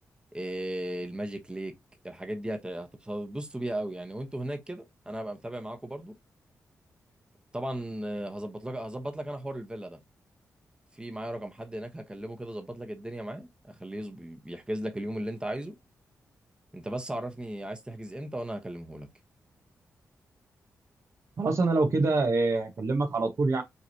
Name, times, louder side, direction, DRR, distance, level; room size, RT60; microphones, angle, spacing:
voice 1, 0.3-1.7 2.0-6.1 7.5-10.0 10.9-15.7 16.7-19.1, right 1 dB, 15° right, 1.1 m, -36 dB
voice 2, 21.4-23.6, right 3 dB, 55° right, 1.2 m, -25 dB
5.6 x 3.2 x 2.9 m
cardioid pair, 50°, 6 cm